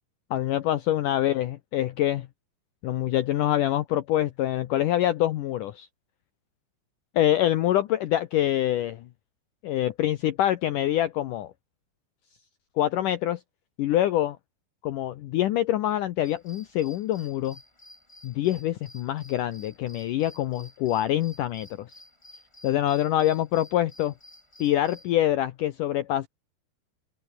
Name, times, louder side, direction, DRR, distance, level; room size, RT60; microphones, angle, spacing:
voice 1, 0.3-2.3 2.8-5.9 7.2-9.1 9.6-11.5 12.8-13.4 13.8-14.4 14.8-17.6 18.2-21.9 22.6-24.1 24.6-26.3, left 13 dB, 75° left, 2.0 m, -25 dB
sound 1, 16.2-25.1, left 1 dB, 5° left, 4.1 m, -52 dB
omnidirectional pair, 4.8 m